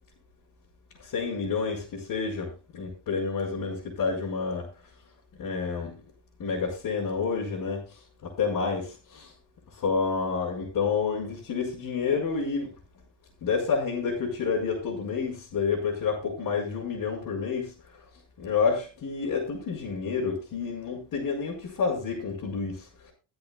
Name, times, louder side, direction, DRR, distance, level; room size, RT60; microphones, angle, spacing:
voice 1, 1.0-4.7 5.4-6.0 6.4-9.3 9.7-12.7 13.4-17.7 18.4-23.1, left 5 dB, 50° left, 5.5 m, -29 dB
23.5 x 7.9 x 2.4 m
cardioid pair, 165°, 43 cm